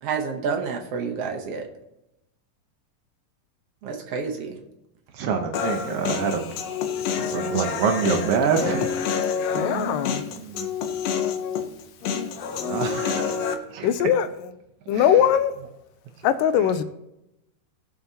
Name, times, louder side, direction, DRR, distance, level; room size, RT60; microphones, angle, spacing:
voice 1, 0.0-1.7 3.8-4.6 9.6-10.0, right 5 dB, 65° right, 1.5 m, -29 dB
voice 2, 5.2-6.4 7.3-8.9 10.4-10.7 12.6-13.4 13.7-14.1 14.9-15.2 16.6-16.7, right 6 dB, 85° right, 1.3 m, -26 dB
Human voice, 5.5-13.5, left 7 dB, 70° left, 1.6 m, -28 dB
voice 3, 9.5-10.2 13.8-14.3 14.9-15.5 16.2-16.8, left 9 dB, 90° left, 2.3 m, -20 dB
18.5 x 7.5 x 2.8 m
omnidirectional pair, 3.9 m